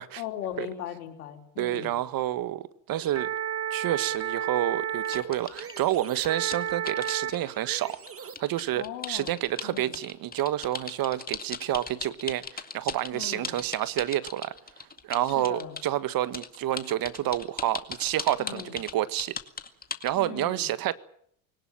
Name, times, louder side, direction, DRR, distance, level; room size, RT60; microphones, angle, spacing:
voice 1, 0.2-1.9 8.7-9.3 9.6-9.9 13.1-13.6 15.3-15.7 18.4-18.8 20.2-20.7, left 11 dB, 85° left, 4.5 m, -38 dB
voice 2, 1.6-3.3 3.7-19.4 20.0-21.0, right 13 dB, 50° right, 1.6 m, -29 dB
sound 1, 3.0-8.3, right 9 dB, 30° right, 2.7 m, -33 dB
sound 2, 5.0-15.9 16.3-20.2, left 5 dB, 20° left, 2.2 m, -38 dB
22.0 x 18.5 x 8.8 m
hypercardioid pair, 85°, 44 cm